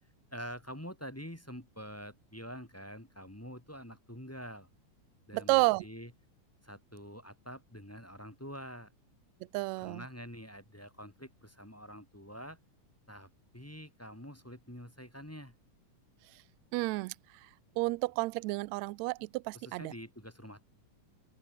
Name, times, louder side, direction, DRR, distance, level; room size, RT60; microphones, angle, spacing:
voice 1, 0.3-4.7 5.3-6.1 6.6-8.9 9.8-12.6 13.1-15.5 19.6-20.6, equal, 5° left, 1.5 m, -46 dB
voice 2, 5.3-5.9 9.5-10.0 16.7-17.2 17.4-17.5 17.8-19.9, right 23 dB, 80° right, 1.6 m, -31 dB
open air
omnidirectional pair, 3.6 m